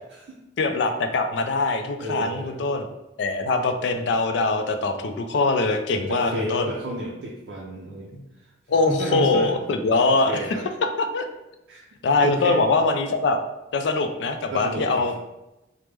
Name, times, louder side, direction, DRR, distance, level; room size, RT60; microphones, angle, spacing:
voice 1, 0.6-2.9 3.2-6.7 8.7-10.3 11.0-11.3 12.0-13.4 13.7-15.1, left 3 dB, 75° left, 6 dB, 0.3 m, -22 dB
voice 2, 2.0-2.6 5.9-9.5 10.3-10.7 11.7-11.9 12.2-12.7 14.5-15.2, right 1 dB, 60° right, -3 dB, 0.4 m, -32 dB
3.1 x 2.0 x 3.3 m, 0.95 s
head